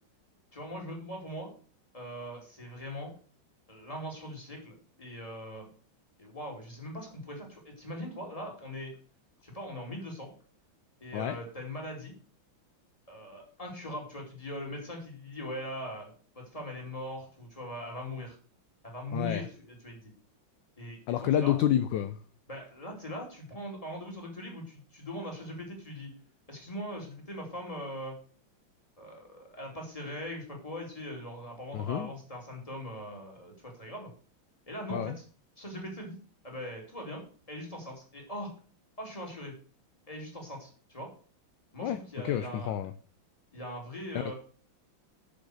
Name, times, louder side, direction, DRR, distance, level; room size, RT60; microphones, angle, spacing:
voice 1, 0.5-1.5 1.9-3.1 3.7-5.7 6.2-8.9 9.4-10.3 11.0-12.1 13.1-18.4 18.8-20.1 20.8-21.6 22.5-26.1 26.5-28.1 29.0-34.1 34.7-35.2 35.6-36.2 36.4-38.5 39.0-39.5 40.1-41.1 41.7-42.7 43.5-44.3, equal, 15° left, 0 dB, 2.9 m, -41 dB
voice 2, 19.1-19.4 21.1-22.2 31.7-32.1 34.9-35.2 41.8-42.0 42.2-42.9, left 11 dB, 75° left, 12 dB, 1.2 m, -28 dB
7.8 x 6.7 x 6.3 m, 0.42 s
omnidirectional pair, 2.2 m